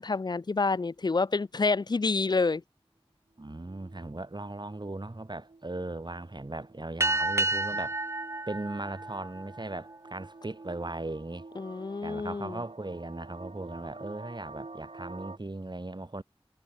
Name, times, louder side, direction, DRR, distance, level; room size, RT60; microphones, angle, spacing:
voice 1, 0.0-2.6 11.6-12.6, left 3 dB, 45° left, 0.4 m, -28 dB
voice 2, 3.4-8.0 8.5-11.5 12.0-16.2, right 2 dB, 50° right, 3.4 m, -38 dB
sound 1, 3.4-15.4, right 3 dB, 85° right, 4.1 m, -49 dB
sound 2, 7.0-9.9, right 2 dB, 25° right, 0.5 m, -30 dB
wide cardioid pair, 50°, 10 cm